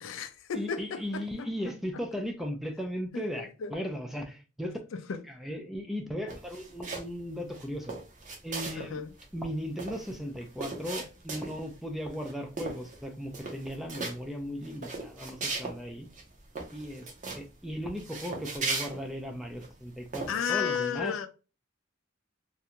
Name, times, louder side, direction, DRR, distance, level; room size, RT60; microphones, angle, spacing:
voice 1, 0.0-1.5 3.1-3.7 4.9-5.2 8.7-9.1 20.3-21.3, left 7 dB, 80° left, 0.4 m, -33 dB
voice 2, 0.5-4.8 5.3-7.9 8.4-9.0 9.3-16.1 16.7-17.1 17.3-21.2, equal, ahead, 0.4 m, -37 dB
sound 1, 6.3-7.2 7.5-8.9 9.2-9.3 9.5-11.7 12.1-12.3 12.6-13.0 13.3-14.1 14.6-15.8 16.1-16.2 16.5-17.4 17.9-19.7 20.1-20.3, right 3 dB, 40° right, 0.6 m, -37 dB
2.5 x 2.2 x 2.8 m
head